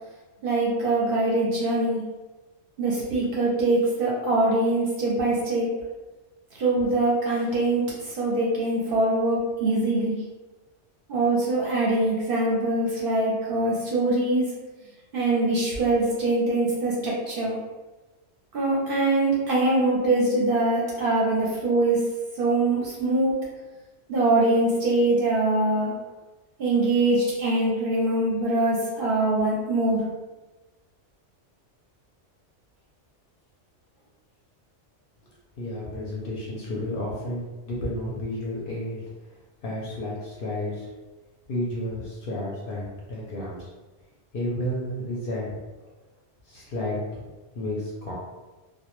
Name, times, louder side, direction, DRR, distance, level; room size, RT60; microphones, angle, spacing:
voice 1, 0.4-2.0 2.8-5.7 6.6-10.2 11.1-14.5 15.1-17.5 18.5-22.0 22.4-23.3 24.1-25.9 26.6-30.0, right 2 dB, 60° right, -4 dB, 0.7 m, -23 dB
voice 2, 35.6-39.0 39.6-40.9 41.5-43.7 44.3-45.6 46.5-47.3 47.6-48.1, left 1 dB, 60° left, -5 dB, 0.6 m, -31 dB
2.1 x 2.1 x 2.9 m, 1.2 s
omnidirectional pair, 1.2 m